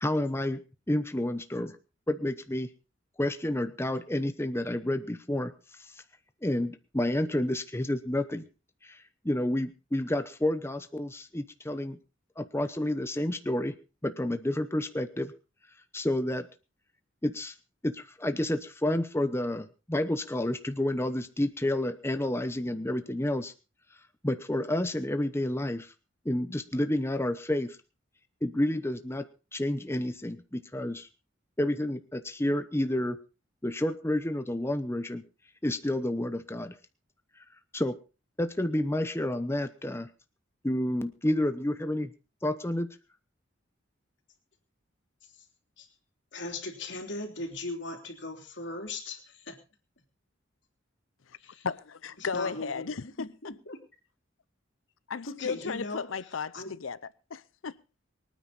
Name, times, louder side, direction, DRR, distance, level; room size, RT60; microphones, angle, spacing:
voice 1, 0.0-0.6 0.9-1.8 2.1-2.7 3.2-5.5 6.4-8.4 8.8-12.0 12.4-13.8 14.0-15.3 15.9-16.5 17.2-17.5 17.8-23.5 24.2-25.9 26.2-27.8 28.4-31.1 31.6-33.2 33.6-35.3 35.6-36.7 37.7-38.0 38.4-40.1 40.6-42.1 42.4-42.9, left 1 dB, 15° left, 0.9 m, -30 dB
voice 2, 46.3-49.6 51.4-51.7 52.2-53.8 55.3-56.1 56.5-56.7, left 2 dB, 65° left, 3.4 m, -39 dB
voice 3, 51.6-53.3 55.1-57.0 57.3-57.8, left 5 dB, 85° left, 0.6 m, -35 dB
24.0 x 9.4 x 4.0 m
head